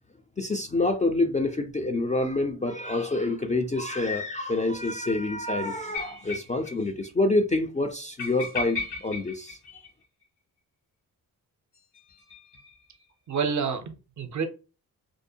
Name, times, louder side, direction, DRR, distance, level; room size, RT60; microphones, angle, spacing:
voice 1, 0.4-9.8, left 2 dB, 20° left, 0.3 m, -27 dB
sound 1, 5.9-6.8 7.0-7.1 7.4-7.5 8.2-10.2 11.7-13.0, left 4 dB, 85° left, 1.0 m, -36 dB
voice 2, 13.3-14.5, right 5 dB, 45° right, 0.5 m, -28 dB
2.6 x 2.1 x 2.7 m
cardioid pair, 55°, 40 cm